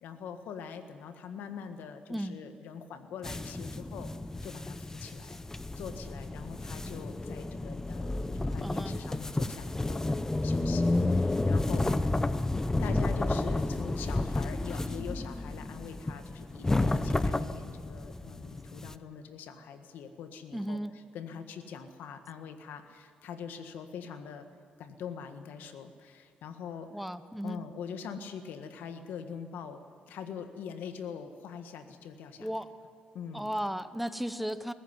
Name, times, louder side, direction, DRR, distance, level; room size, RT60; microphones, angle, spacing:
voice 1, 0.0-4.1 4.4-5.4 5.8-11.8 12.8-20.8 21.1-24.5 24.8-26.9 27.4-29.8 30.1-32.5 33.1-33.6, left 7 dB, 85° left, 8 dB, 1.7 m, -43 dB
voice 2, 2.1-2.4 8.6-9.0 20.5-20.9 26.9-27.6 32.4-32.7 33.3-34.7, equal, ahead, 12 dB, 1.1 m, -35 dB
sound 1, 3.2-18.9, left 2 dB, 15° left, 0.8 m, -31 dB
21.0 x 14.5 x 9.7 m, 2.1 s
cardioid pair, 90°, 3 cm